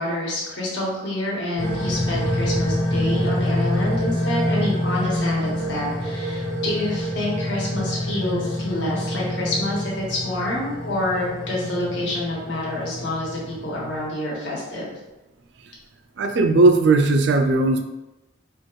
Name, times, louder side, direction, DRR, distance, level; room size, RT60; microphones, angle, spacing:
voice 1, 0.0-14.9, left 1 dB, 65° left, -5 dB, 1.3 m, -27 dB
sound 1, 1.6-14.1, left 1 dB, 20° left, 0.9 m, -26 dB
voice 2, 16.2-17.8, right 2 dB, 60° right, 6 dB, 0.4 m, -17 dB
4.3 x 2.5 x 3.1 m, 1.0 s
head